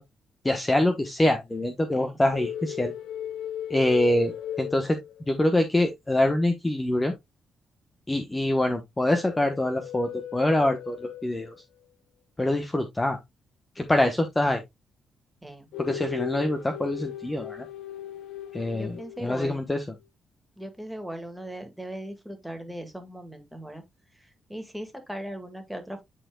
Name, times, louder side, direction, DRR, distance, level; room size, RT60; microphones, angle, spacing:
voice 1, 0.4-2.9 3.7-5.0 5.3-7.1 8.1-11.5 12.4-13.2 13.8-14.6 15.8-17.7 18.5-19.8, left 1 dB, 15° left, 1.0 m, -25 dB
voice 2, 1.9-2.3 15.4-15.7 18.7-19.7 20.6-23.8 24.5-26.0, right 1 dB, 5° right, 1.9 m, -38 dB
sound 1, 2.3-5.5 9.0-11.6 15.7-19.5, left 11 dB, 85° left, 0.7 m, -37 dB
11.0 x 4.3 x 2.2 m
cardioid pair, 100°, 0 cm